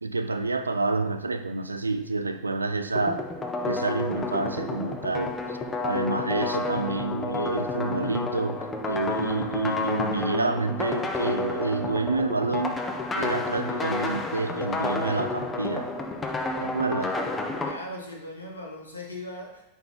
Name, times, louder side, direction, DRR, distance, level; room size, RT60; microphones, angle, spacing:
voice 1, 0.0-3.2 3.6-5.6 5.8-12.8 13.1-15.9 16.6-17.1, right 3 dB, 80° right, 9 dB, 0.4 m, -28 dB
sound 1, 3.0-17.7, left 3 dB, 15° left, 0.7 m, -30 dB
voice 2, 17.6-19.7, left 1 dB, 80° left, -1 dB, 1.3 m, -39 dB
5.7 x 4.2 x 4.2 m, 0.91 s
figure-of-eight pair, 90°, 0 cm